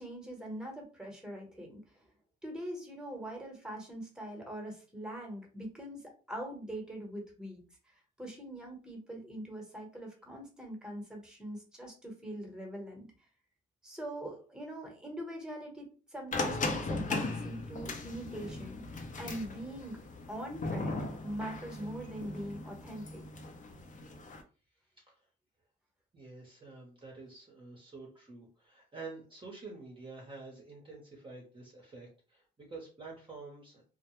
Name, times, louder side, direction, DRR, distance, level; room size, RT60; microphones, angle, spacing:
voice 1, 0.0-2.0 2.4-7.6 8.2-13.1 13.8-18.8 19.2-20.0 20.3-23.3, right 1 dB, 5° right, 1 dB, 1.0 m, -42 dB
sound 1, 16.3-24.4, left 3 dB, 40° left, 0.6 m, -38 dB
voice 2, 26.1-33.8, right 3 dB, 25° right, -2 dB, 0.8 m, -48 dB
2.1 x 2.0 x 2.9 m, 0.36 s
cardioid pair, 90°, 20 cm